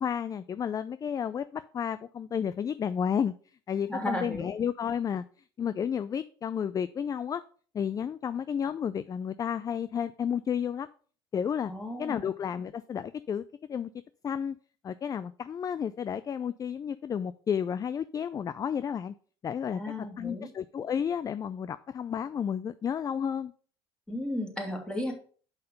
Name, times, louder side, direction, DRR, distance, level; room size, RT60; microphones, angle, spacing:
voice 1, 0.0-3.3 3.7-5.2 5.6-7.4 7.7-10.9 11.3-11.7 12.0-13.4 13.7-13.9 14.2-14.6 14.8-19.1 19.4-19.8 20.2-23.5, left 8 dB, 25° left, 0.4 m, -31 dB
voice 2, 3.9-4.5 11.7-12.3 19.7-20.5 24.1-25.1, left 1 dB, 5° left, 2.5 m, -34 dB
5.7 x 5.6 x 5.5 m
hypercardioid pair, 80°, 14 cm